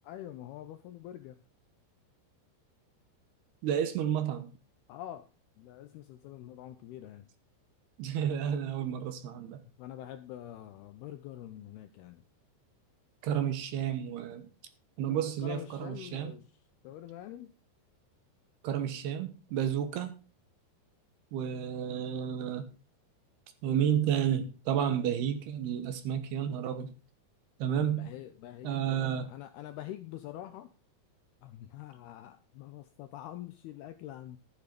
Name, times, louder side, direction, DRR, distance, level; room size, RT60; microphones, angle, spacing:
voice 1, 0.0-1.4 4.9-5.3 5.6-7.3 9.6-12.2 15.1-16.5 16.8-17.5 28.0-30.7 31.4-34.4, left 12 dB, 80° left, 10 dB, 2.3 m, -45 dB
voice 2, 3.6-4.5 8.0-9.6 13.2-14.5 15.0-16.3 18.6-20.1 21.3-22.7 23.6-26.9 27.6-28.1 28.6-29.3, right 9 dB, 70° right, 10 dB, 2.9 m, -31 dB
13.0 x 8.3 x 5.2 m, 0.33 s
omnidirectional pair, 5.3 m